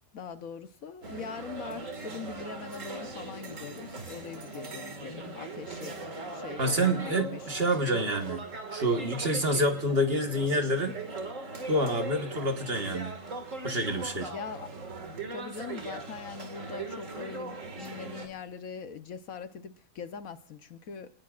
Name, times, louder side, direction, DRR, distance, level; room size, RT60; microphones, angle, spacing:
voice 1, 0.1-7.5 14.3-14.7 15.3-21.1, left 6 dB, 70° left, 9 dB, 1.4 m, -42 dB
sound 1, 1.0-18.3, right 3 dB, 60° right, 2.4 m, -40 dB
voice 2, 6.6-8.4 8.7-11.0 11.7-13.1 13.6-14.3, right 1 dB, 40° right, 5 dB, 1.6 m, -27 dB
29.5 x 19.0 x 2.5 m, 0.39 s
omnidirectional pair, 1.5 m